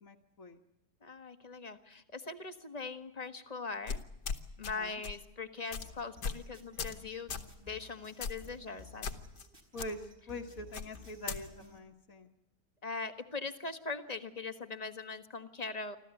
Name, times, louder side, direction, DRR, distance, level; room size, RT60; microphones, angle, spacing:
voice 1, 0.0-0.6 4.6-5.0 9.7-12.3, left 1 dB, 55° left, -1 dB, 1.8 m, -44 dB
voice 2, 1.0-4.0 4.6-7.3 7.7-9.2 12.8-16.0, left 4 dB, 25° left, 8 dB, 1.5 m, -41 dB
sound 1, 3.9-4.7 5.0-5.2 5.7-5.9 6.2-6.4 6.8-7.0 7.3-7.5 8.2-8.5 9.0-9.5 9.8-9.9 10.7-11.4, left 5 dB, 80° left, 2.1 m, -38 dB
sound 2, 5.8-11.8, left 2 dB, 30° right, 4.8 m, -55 dB
26.0 x 15.0 x 9.7 m, 0.84 s
omnidirectional pair, 1.8 m